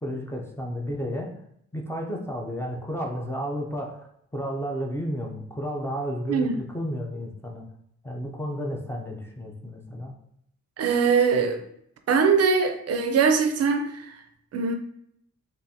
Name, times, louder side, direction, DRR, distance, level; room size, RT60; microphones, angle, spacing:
voice 1, 0.0-1.4 1.7-7.6 8.0-10.2, equal, 10° left, 0.5 m, -32 dB
voice 2, 6.3-6.6 10.8-11.6 12.1-14.2 14.5-14.8, right 5 dB, 60° right, 0.4 m, -22 dB
3.8 x 2.5 x 2.7 m
wide cardioid pair, 140°, 29 cm